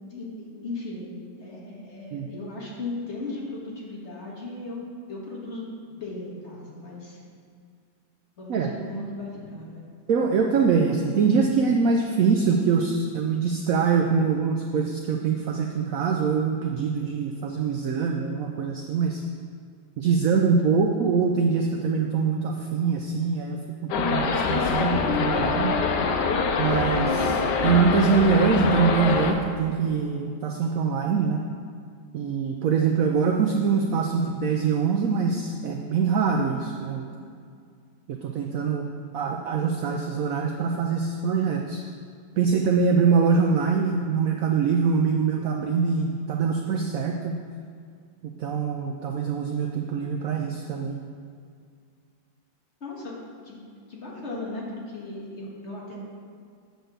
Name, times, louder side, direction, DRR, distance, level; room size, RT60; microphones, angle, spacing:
voice 1, 0.1-4.8 5.1-7.2 8.4-9.8 36.9-37.0 52.8-53.1 53.4-56.0, left 2 dB, 40° left, -4 dB, 1.7 m, -37 dB
voice 2, 10.1-19.2 20.0-25.8 26.6-31.4 32.1-37.1 38.1-38.9 39.1-41.8 42.4-47.4 48.2-51.0, right 5 dB, 85° right, 2 dB, 0.7 m, -24 dB
sound 1, 23.9-29.3, left 4 dB, 75° left, 1.2 m, -24 dB
7.9 x 4.1 x 6.5 m, 2.2 s
omnidirectional pair, 2.0 m